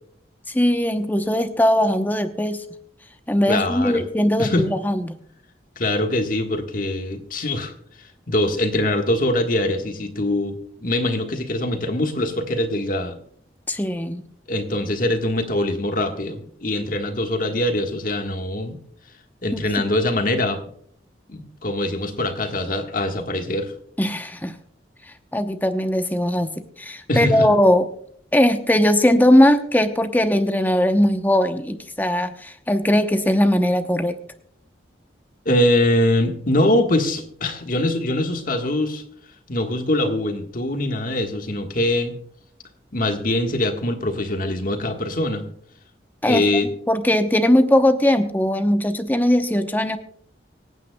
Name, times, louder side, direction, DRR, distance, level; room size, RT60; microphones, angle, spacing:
voice 1, 0.5-2.6 3.3-5.1 13.7-14.2 19.5-19.7 24.0-24.5 25.3-27.8 28.3-34.2 46.2-46.4 46.9-50.0, left 1 dB, 10° left, 7 dB, 0.9 m, -19 dB
voice 2, 3.5-4.0 4.4-4.7 5.8-7.7 8.3-13.2 14.5-18.8 19.4-20.6 21.3-23.7 27.1-27.5 35.4-39.0 39.5-42.2 42.9-45.4 46.2-46.7, left 1 dB, 50° left, 5 dB, 1.6 m, -23 dB
25.0 x 9.1 x 2.3 m, 0.62 s
head